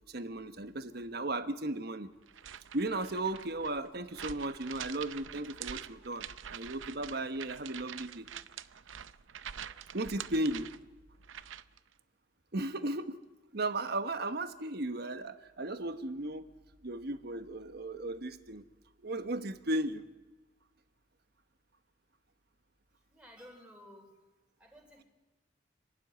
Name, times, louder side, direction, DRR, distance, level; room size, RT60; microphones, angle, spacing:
voice 1, 0.1-2.1 2.7-8.3 9.9-10.7 12.5-13.2 13.5-16.5 16.8-18.6 19.0-20.1, right 2 dB, 55° right, 10 dB, 1.2 m, -35 dB
sound 1, 2.3-11.8, right 9 dB, 85° right, 0.6 m, -46 dB
voice 2, 22.9-24.2 24.6-25.0, equal, 5° right, -1 dB, 3.7 m, -55 dB
27.0 x 12.5 x 9.3 m, 1.1 s
head